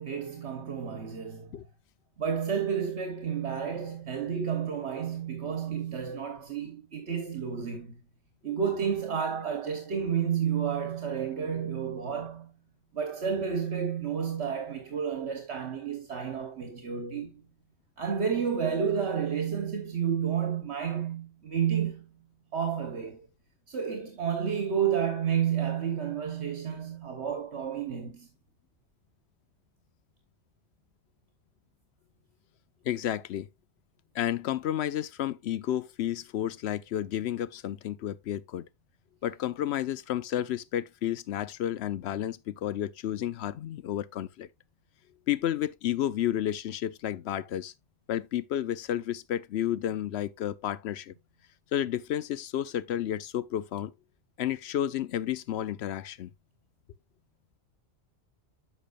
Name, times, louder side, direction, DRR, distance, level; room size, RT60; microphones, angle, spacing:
voice 1, 0.0-1.5 2.2-8.0 8.4-12.5 12.9-17.4 18.0-22.0 22.5-23.3 23.7-28.3, right 7 dB, 70° right, 1.4 m, -31 dB
voice 2, 32.8-33.5 34.1-38.7 39.2-44.5 45.3-47.7 48.1-51.1 51.7-53.9 54.4-56.3, left 11 dB, 70° left, 0.8 m, -31 dB
10.0 x 6.2 x 2.4 m
omnidirectional pair, 1.2 m